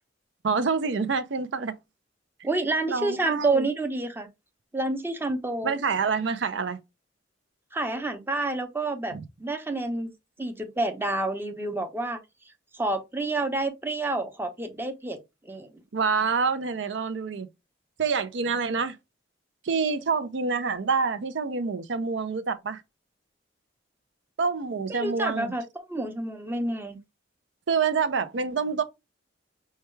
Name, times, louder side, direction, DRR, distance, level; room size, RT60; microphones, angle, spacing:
voice 1, 0.4-1.7 2.9-3.7 5.6-6.8 9.1-9.2 15.9-17.5 18.0-19.0 19.6-22.8 24.4-25.5 27.7-28.8, right 5 dB, 70° right, 0.5 m, -27 dB
voice 2, 2.4-4.3 4.7-5.7 7.7-9.1 9.4-10.1 10.4-12.2 12.7-15.2 15.4-15.7 24.9-27.0, right 2 dB, 10° right, 0.7 m, -29 dB
5.5 x 2.3 x 3.1 m
head